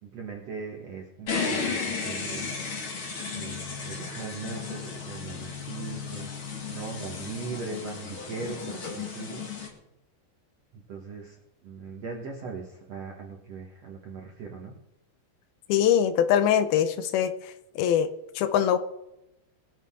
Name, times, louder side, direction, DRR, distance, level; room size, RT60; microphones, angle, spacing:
voice 1, 0.0-2.5 3.3-6.3 6.7-9.5 10.7-11.4 11.6-14.7, right 4 dB, 70° right, 0 dB, 1.6 m, -39 dB
sound 1, 1.3-9.7, left 5 dB, 45° left, 1.8 m, -34 dB
voice 2, 15.7-17.3 17.8-18.1 18.4-18.8, left 9 dB, 80° left, 11 dB, 2.2 m, -22 dB
21.5 x 8.6 x 3.7 m, 0.90 s
omnidirectional pair, 5.1 m